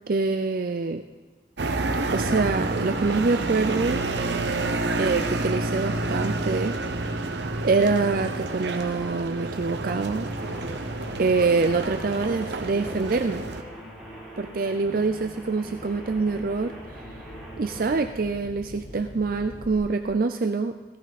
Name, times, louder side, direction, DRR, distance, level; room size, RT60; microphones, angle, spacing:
voice 1, 0.1-1.0 2.1-4.1 4.9-6.8 7.0-7.3 7.6-10.3 11.2-13.4 14.4-17.0 17.6-20.7, right 4 dB, 50° right, 7 dB, 0.5 m, -25 dB
sound 1, 1.6-13.6, right 2 dB, 70° right, 1.0 m, -29 dB
sound 2, 9.4-11.2 11.8-19.7, equal, 80° left, 3.8 m, -48 dB
sound 3, 10.2-17.9, equal, ahead, 4.0 m, -43 dB
16.5 x 14.5 x 4.1 m, 1.3 s
head